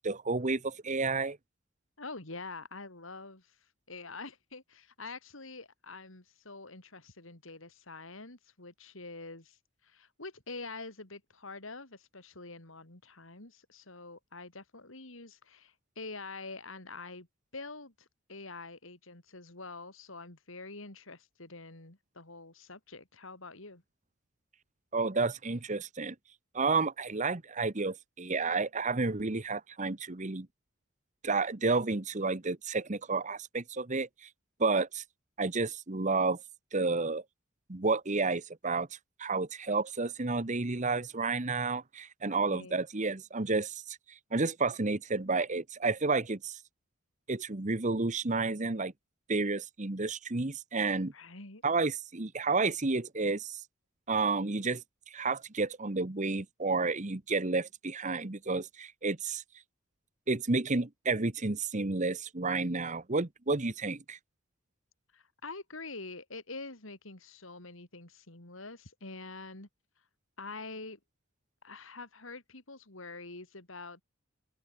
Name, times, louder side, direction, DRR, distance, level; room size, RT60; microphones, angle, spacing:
voice 1, 0.0-1.4 24.9-26.1 26.5-30.5 31.2-34.3 34.6-35.0 35.4-36.4 36.7-37.2 37.7-38.9 39.2-44.0 44.3-46.6 47.3-48.9 49.3-51.1 51.6-53.6 54.1-59.4 60.3-64.2, right 3 dB, 35° right, 1.2 m, -31 dB
voice 2, 2.0-3.6 3.9-9.6 9.8-17.3 17.5-23.8 42.3-42.8 51.1-51.6 65.1-69.7 70.4-71.0 71.6-74.0, left 3 dB, 70° left, 3.8 m, -46 dB
open air
head